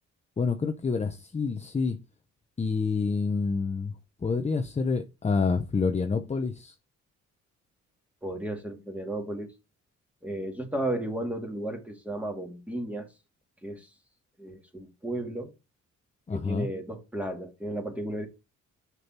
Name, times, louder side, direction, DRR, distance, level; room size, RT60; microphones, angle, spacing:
voice 1, 0.4-2.0 2.6-3.9 4.2-6.7 16.3-16.7, left 4 dB, 20° left, 0.8 m, -28 dB
voice 2, 8.2-9.5 10.2-13.1 13.6-13.9 14.4-15.5 16.3-18.3, right 1 dB, 5° right, 2.4 m, -34 dB
6.4 x 6.2 x 4.4 m
cardioid pair, 90°, 30 cm